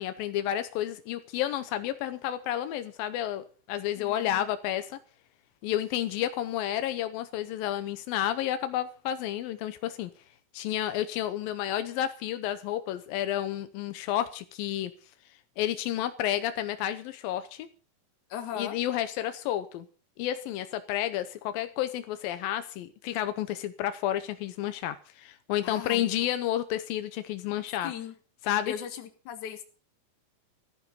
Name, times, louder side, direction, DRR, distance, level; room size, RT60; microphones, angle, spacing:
voice 1, 0.0-5.0 5.6-10.1 10.5-14.9 15.6-17.7 18.6-19.9 20.2-27.9 28.4-28.7, left 12 dB, 85° left, 11 dB, 2.0 m, -31 dB
voice 2, 3.9-4.5 18.3-18.8 25.6-26.1 27.8-28.1 28.6-29.6, left 9 dB, 55° left, 7 dB, 2.5 m, -38 dB
14.5 x 14.0 x 5.4 m, 0.38 s
omnidirectional pair, 5.3 m